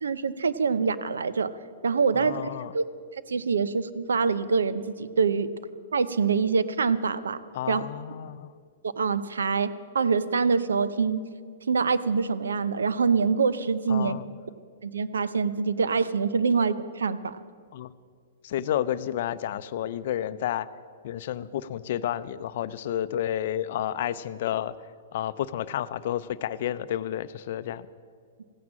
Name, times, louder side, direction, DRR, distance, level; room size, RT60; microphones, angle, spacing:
voice 1, 0.0-1.5 1.8-2.8 3.3-5.5 5.9-7.4 7.7-7.8 8.8-9.7 9.9-11.2 11.7-14.2 14.8-17.4, right 5 dB, 90° right, 14 dB, 0.6 m, -25 dB
voice 2, 2.1-2.7 7.5-8.5 13.9-14.3 17.7-17.9 18.4-20.7 21.0-24.8 25.1-27.9, left 11 dB, 60° left, 15 dB, 0.5 m, -31 dB
15.0 x 9.5 x 7.4 m, 2.1 s
hypercardioid pair, 130°, 0 cm